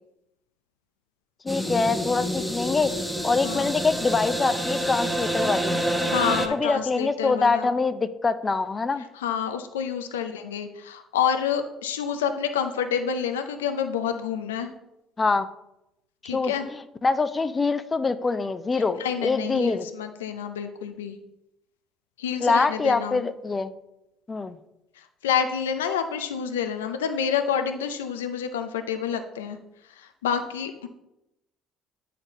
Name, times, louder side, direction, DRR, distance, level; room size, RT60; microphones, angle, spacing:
voice 1, 1.4-2.9 3.2-5.8 6.5-9.0 15.2-15.5 16.3-19.9 22.4-23.7 24.3-24.5, left 4 dB, 30° left, 12 dB, 0.5 m, -24 dB
sound 1, 1.5-6.5, equal, ahead, 1.1 m, -28 dB
voice 2, 6.1-7.7 9.1-14.7 16.2-16.7 19.0-21.2 22.2-23.3 25.0-29.6 29.9-30.9, left 8 dB, 90° left, 7 dB, 0.4 m, -28 dB
8.7 x 4.2 x 4.0 m, 0.88 s
hypercardioid pair, 60°, 0 cm